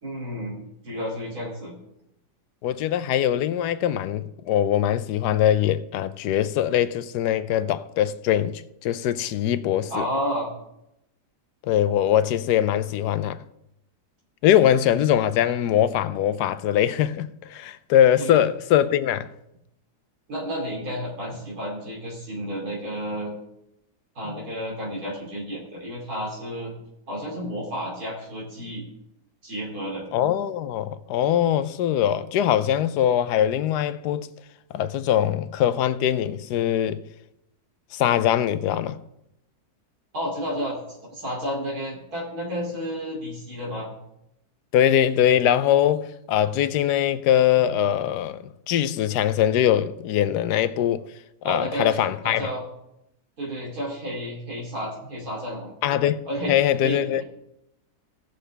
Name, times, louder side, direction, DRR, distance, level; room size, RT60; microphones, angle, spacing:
voice 1, 0.0-0.6 0.8-1.7 9.9-10.5 18.2-18.4 20.3-23.3 24.1-26.7 27.1-28.8 29.4-30.0 40.1-43.9 51.4-52.0 52.2-52.6 53.4-55.7 56.3-56.6 56.8-57.2, equal, 65° right, 3.4 m, -31 dB
voice 2, 2.6-10.0 11.6-13.4 14.4-19.3 30.1-34.3 34.7-37.0 37.9-39.0 44.7-51.0 51.4-52.5 55.8-56.2 56.5-57.2, left 10 dB, 85° left, 1.2 m, -22 dB
17.0 x 6.5 x 3.3 m
omnidirectional pair, 1.7 m